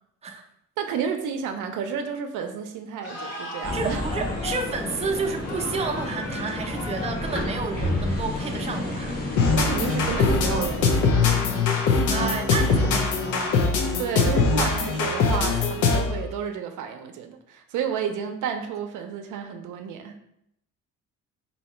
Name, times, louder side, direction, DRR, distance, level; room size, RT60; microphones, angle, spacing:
voice 1, 0.8-4.0 9.5-11.6 14.0-20.2, right 7 dB, 80° right, 5 dB, 0.5 m, -31 dB
sound 1, 3.0-9.5, left 2 dB, 50° left, 1.3 m, -39 dB
sound 2, 3.6-11.1, left 1 dB, 30° left, 1.0 m, -30 dB
voice 2, 3.7-9.2 12.1-13.6, right 4 dB, 20° right, 4 dB, 0.5 m, -30 dB
sound 3, 9.4-16.2, left 4 dB, 85° left, 0.7 m, -22 dB
2.8 x 2.7 x 4.3 m, 0.75 s
cardioid pair, 90°, 30 cm